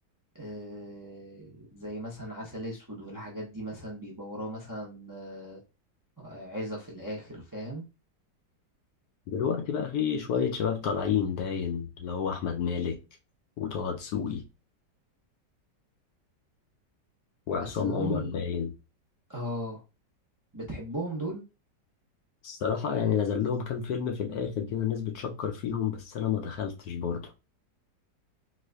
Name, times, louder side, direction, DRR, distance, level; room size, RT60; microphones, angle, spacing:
voice 1, 0.3-5.6 6.2-7.8 17.6-18.4 19.3-19.8 20.5-21.4, right 1 dB, 30° right, 0.3 m, -37 dB
voice 2, 9.3-13.0 13.6-14.4 17.5-18.7 22.4-27.2, left 7 dB, 70° left, 0.9 m, -30 dB
4.2 x 2.6 x 2.2 m
omnidirectional pair, 1.9 m